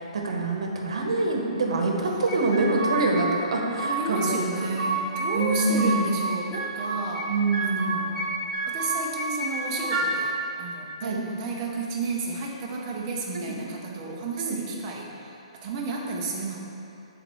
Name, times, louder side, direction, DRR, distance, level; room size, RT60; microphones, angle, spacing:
voice 1, 0.0-4.7 5.3-6.1 7.3-8.0 11.0-11.2 13.3-13.5 14.4-14.6, right 2 dB, 60° right, 1 dB, 1.1 m, -25 dB
sound 1, 2.3-3.2 3.5-4.3 4.5-6.0 6.3-7.3 7.5-8.3 8.5-10.1, right 3 dB, 10° left, 1.4 m, -29 dB
voice 2, 3.8-7.3 7.6-8.3 8.7-16.6, right 3 dB, 15° right, -3 dB, 0.7 m, -32 dB
11.0 x 4.0 x 3.1 m, 2.8 s
hypercardioid pair, 180°, 3 cm